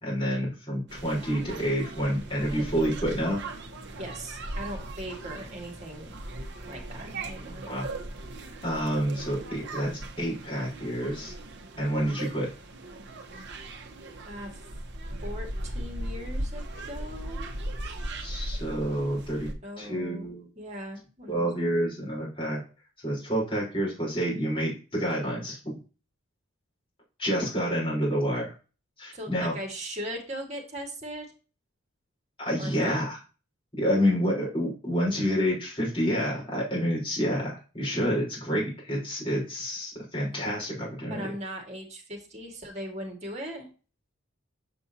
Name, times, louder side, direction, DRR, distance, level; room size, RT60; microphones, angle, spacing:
voice 1, 0.0-3.4 7.7-7.9 8.6-11.3 11.8-12.5 18.2-19.5 19.8-20.5 21.3-22.6 23.0-25.8 27.2-28.5 29.0-29.6 32.4-33.2 33.8-41.3, equal, 25° left, -5 dB, 3.9 m, -28 dB
sound 1, 0.9-19.5, right 1 dB, 55° right, 1.0 m, -38 dB
voice 2, 4.0-6.1 6.7-7.7 14.3-14.6 15.2-17.6 19.6-21.5 21.7-21.9 29.1-31.3 32.6-33.0 41.1-43.7, equal, 30° right, 1 dB, 1.9 m, -39 dB
7.3 x 5.3 x 2.8 m, 0.34 s
head